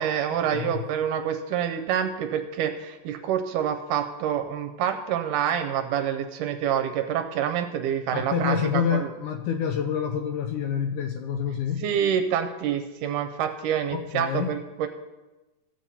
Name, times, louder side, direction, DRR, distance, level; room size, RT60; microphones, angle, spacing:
voice 1, 0.0-9.0 11.8-14.9, right 9 dB, 80° right, 6 dB, 2.0 m, -27 dB
voice 2, 0.5-0.8 8.1-11.8 13.9-14.6, left 7 dB, 80° left, 6 dB, 1.9 m, -27 dB
15.5 x 7.6 x 4.2 m, 1.1 s
omnidirectional pair, 4.0 m